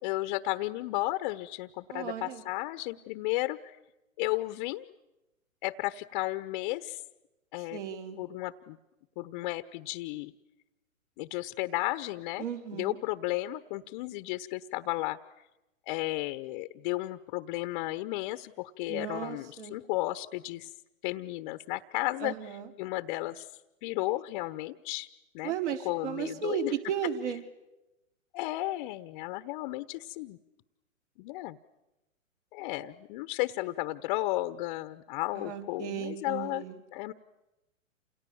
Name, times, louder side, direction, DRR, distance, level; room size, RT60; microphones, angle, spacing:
voice 1, 0.0-3.7 4.2-4.9 5.6-7.0 7.5-7.8 8.2-8.8 9.2-10.3 11.2-12.4 12.7-15.2 15.9-20.7 21.0-22.3 22.8-23.5 23.8-25.1 25.3-25.6 25.8-26.7 28.3-30.4 31.2-31.6 32.5-36.6 36.9-37.1, left 18 dB, 35° left, 11 dB, 1.0 m, -33 dB
voice 2, 1.9-2.4 7.7-8.2 12.4-13.0 18.9-19.7 22.2-22.7 25.4-27.4 35.4-36.8, right 7 dB, 60° right, 4 dB, 5.0 m, -35 dB
29.0 x 28.0 x 7.2 m, 0.98 s
hypercardioid pair, 125°, 40 cm